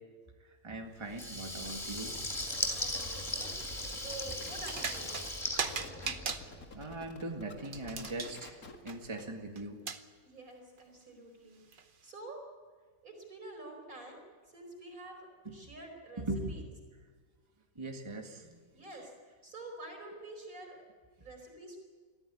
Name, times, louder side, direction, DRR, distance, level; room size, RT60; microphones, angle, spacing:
voice 1, 0.6-2.1 6.3-6.4 6.7-8.6 8.8-9.8 15.5-15.6 16.2-16.6 17.8-18.6, right 2 dB, 20° right, 3 dB, 1.9 m, -40 dB
Water tap faucet / Liquid, 1.1-6.6, left 1 dB, 20° left, 3.2 m, -38 dB
sound 1, 1.6-9.1, left 3 dB, 90° left, 2.5 m, -50 dB
voice 2, 2.7-3.5 3.9-5.5 10.3-12.4 13.0-14.2 14.5-16.7 18.7-19.1 19.4-20.8 21.2-21.8, right 2 dB, 80° right, 2 dB, 5.4 m, -48 dB
sound 2, 4.6-5.3 5.6-6.4 7.6-8.4 8.9-9.2 9.6-9.7 9.9-10.0 10.8-10.9 11.7-11.8, right 5 dB, 40° right, 1.1 m, -37 dB
22.0 x 14.5 x 9.9 m, 1.5 s
omnidirectional pair, 1.5 m